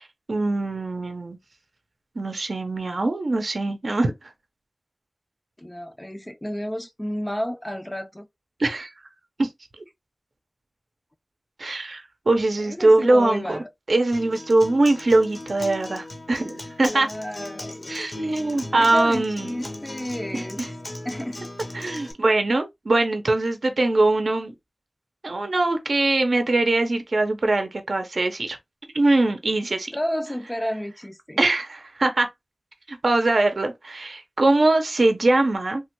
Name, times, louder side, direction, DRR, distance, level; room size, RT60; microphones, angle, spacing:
voice 1, 0.0-1.4 2.2-4.1 8.6-8.9 9.4-9.5 11.6-13.6 13.9-17.1 17.9-19.5 20.3-20.7 21.7-24.5 25.2-28.6 28.9-29.9 31.4-32.3 32.9-35.8, right 2 dB, 80° right, 0.5 m, -22 dB
voice 2, 5.6-8.3 12.6-13.7 16.9-18.4 18.8-20.6 21.0-21.4 29.9-31.4, equal, 20° left, 0.3 m, -31 dB
Acoustic guitar, 14.1-22.1, left 1 dB, 65° left, 0.8 m, -37 dB
3.2 x 2.2 x 2.9 m
wide cardioid pair, 65°, 0 cm